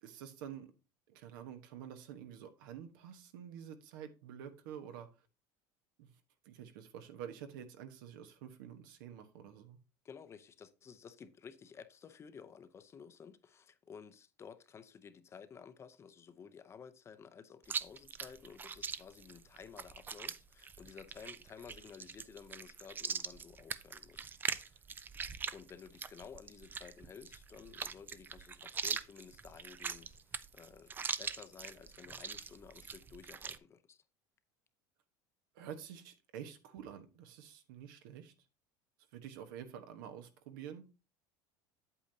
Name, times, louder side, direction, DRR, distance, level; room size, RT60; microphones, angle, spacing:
voice 1, 0.0-0.7 1.1-5.1 6.0-6.1 6.4-9.8 35.5-38.3 39.1-40.9, right 9 dB, 85° right, 1.2 m, -48 dB
voice 2, 10.0-24.8 25.5-34.0, left 6 dB, 25° left, 0.6 m, -54 dB
Chewing mastication, 17.6-33.6, right 6 dB, 20° right, 0.4 m, -42 dB
8.3 x 7.8 x 2.7 m
cardioid pair, 140°, 11 cm